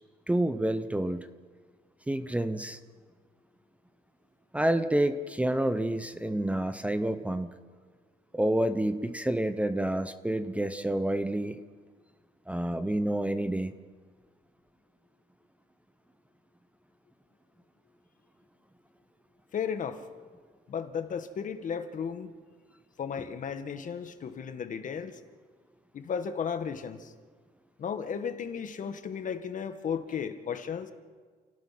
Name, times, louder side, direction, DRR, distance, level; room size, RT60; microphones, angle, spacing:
voice 1, 0.3-1.3 2.1-2.8 4.5-7.5 8.3-11.6 12.5-13.7, right 1 dB, 10° right, 10 dB, 0.8 m, -28 dB
voice 2, 19.5-20.0 20.7-22.3 23.0-25.2 25.9-27.1 27.8-30.9, left 7 dB, 50° left, 8 dB, 1.7 m, -34 dB
30.0 x 18.0 x 6.0 m, 1.5 s
cardioid pair, 130°, 17 cm